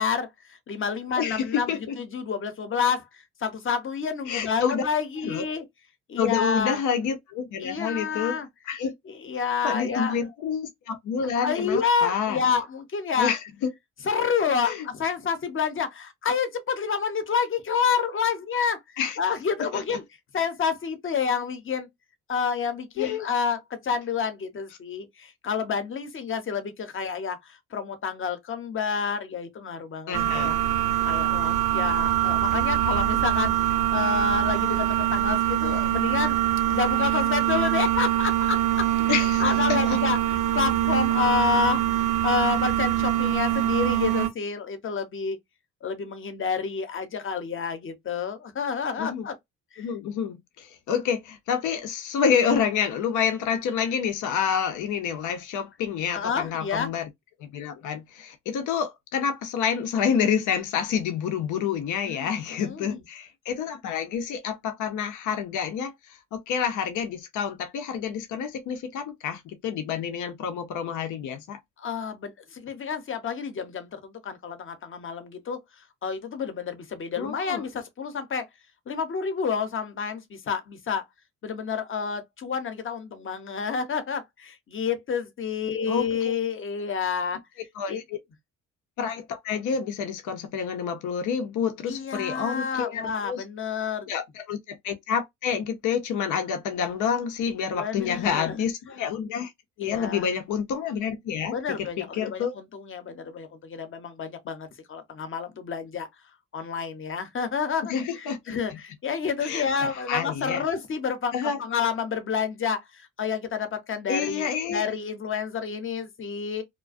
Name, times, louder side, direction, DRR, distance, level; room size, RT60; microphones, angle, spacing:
voice 1, 0.0-1.7 2.0-3.0 3.4-5.6 6.1-6.8 7.6-8.5 9.1-10.2 11.4-13.3 14.0-18.8 19.2-20.0 20.3-21.9 22.3-30.5 31.0-36.4 36.7-38.9 39.4-41.8 42.2-45.4 45.8-49.3 49.7-49.9 56.1-56.9 62.0-62.3 62.6-63.0 71.8-75.6 76.0-78.5 78.9-81.0 81.4-87.4 87.9-88.0 91.9-94.1 97.8-98.6 99.8-100.3 101.5-106.1 106.5-111.3 111.6-116.6, left 6 dB, 45° left, 0.7 m, -29 dB
voice 2, 1.2-2.0 4.3-4.8 5.2-5.4 6.2-8.4 8.7-8.9 9.6-12.4 13.2-13.4 14.6-14.9 19.0-19.2 19.7-19.8 23.0-23.3 30.1-30.6 39.1-39.4 39.7-40.0 49.0-49.2 49.8-57.1 57.4-71.6 77.2-77.7 85.9-86.4 87.8-88.2 89.0-93.4 94.1-99.5 99.8-102.5 107.9-108.8 109.4-110.6 111.3-111.6 114.1-114.9, left 7 dB, 80° left, 0.6 m, -28 dB
sound 1, 30.1-44.3, right 13 dB, 85° right, 0.6 m, -24 dB
2.3 x 2.1 x 2.4 m
cardioid pair, 90°, 30 cm